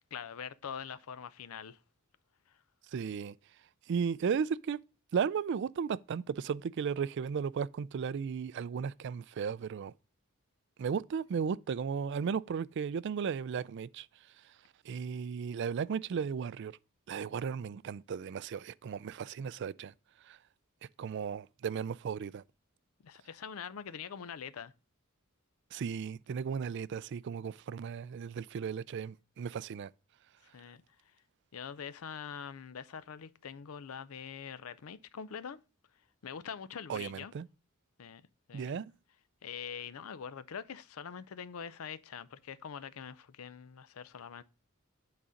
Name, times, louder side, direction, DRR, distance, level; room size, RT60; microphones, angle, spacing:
voice 1, 0.1-1.8 2.5-2.6 23.0-24.7 30.5-30.8 31.5-35.6 36.2-37.3 38.0-38.2 38.5-38.7 39.4-44.4, left 7 dB, 80° left, 0.5 m, -44 dB
voice 2, 2.9-3.3 3.9-4.8 5.1-9.9 10.8-14.1 14.9-16.7 17.1-19.9 20.3-20.4 21.0-22.4 25.7-29.9 36.9-37.5 38.5-38.9, right 6 dB, 55° right, 0.3 m, -35 dB
8.7 x 4.1 x 5.0 m
head